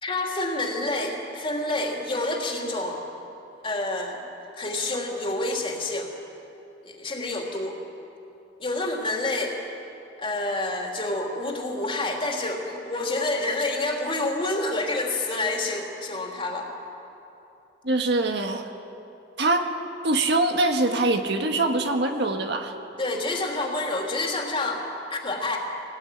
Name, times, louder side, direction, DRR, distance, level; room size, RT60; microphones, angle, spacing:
voice 1, 0.0-3.0 3.6-4.2 4.6-6.1 6.8-7.8 8.6-9.5 10.2-16.7 23.0-24.8 25.1-25.6, left 2 dB, 30° left, 0 dB, 3.3 m, -28 dB
voice 2, 17.8-18.6 19.4-19.7 20.0-22.7, right 2 dB, 65° right, 4 dB, 1.7 m, -23 dB
23.5 x 18.5 x 9.4 m, 2.9 s
head